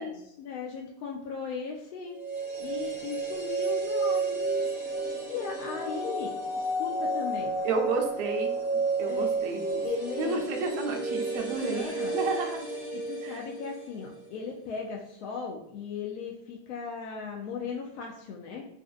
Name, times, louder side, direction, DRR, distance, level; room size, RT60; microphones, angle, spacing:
voice 1, 0.0-2.2 2.6-4.4 5.3-7.5 9.1-9.3 9.8-10.4 11.6-12.2 13.1-18.7, left 5 dB, 85° left, 0 dB, 0.5 m, -37 dB
sound 1, 2.1-14.3 14.5-14.6, right 3 dB, 5° right, 0.7 m, -31 dB
voice 2, 7.6-9.8 10.2-12.6 13.2-13.4, right 4 dB, 60° right, 3 dB, 0.6 m, -32 dB
2.5 x 2.4 x 2.4 m, 0.78 s
supercardioid pair, 160°, 33 cm